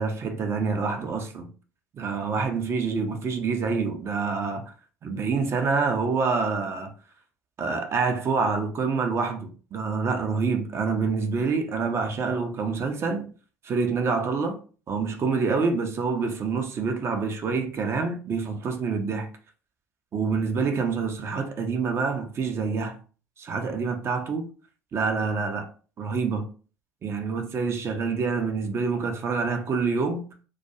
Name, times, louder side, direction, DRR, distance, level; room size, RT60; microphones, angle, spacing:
voice 1, 0.0-1.5 1.9-4.7 5.0-6.9 7.6-13.3 13.6-14.6 14.9-19.3 20.1-23.0 23.4-24.5 24.9-25.7 26.0-26.5 27.0-30.2, right 4 dB, 35° right, 0.5 m, -27 dB
2.3 x 2.2 x 2.7 m
figure-of-eight pair, 65°, 8 cm